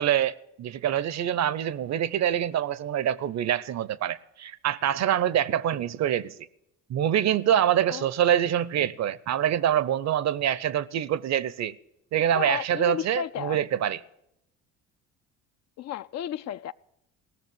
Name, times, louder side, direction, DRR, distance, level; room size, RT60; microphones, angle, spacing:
voice 1, 0.0-6.3 6.9-11.8 12.1-14.0, right 10 dB, 50° right, 0.7 m, -25 dB
voice 2, 12.3-13.6 15.8-16.7, left 10 dB, 50° left, 0.5 m, -33 dB
16.5 x 6.6 x 9.2 m
supercardioid pair, 70°, 36 cm